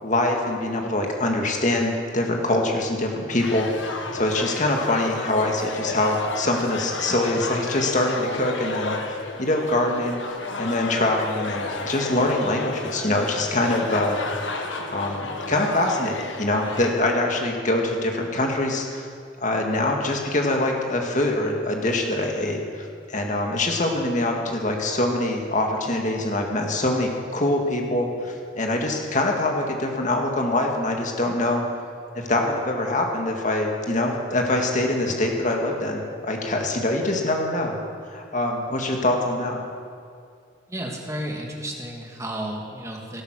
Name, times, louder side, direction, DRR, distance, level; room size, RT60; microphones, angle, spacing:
voice 1, 0.0-3.7 4.1-10.2 10.6-14.2 14.9-19.1 19.4-31.6 32.1-37.7 38.1-39.6, left 1 dB, 40° left, 1 dB, 2.0 m, -24 dB
sound 1, 3.4-16.9, left 3 dB, 70° left, 1.4 m, -32 dB
voice 2, 40.7-43.2, right 1 dB, 15° right, 0 dB, 2.0 m, -32 dB
18.5 x 12.0 x 6.4 m, 2.2 s
head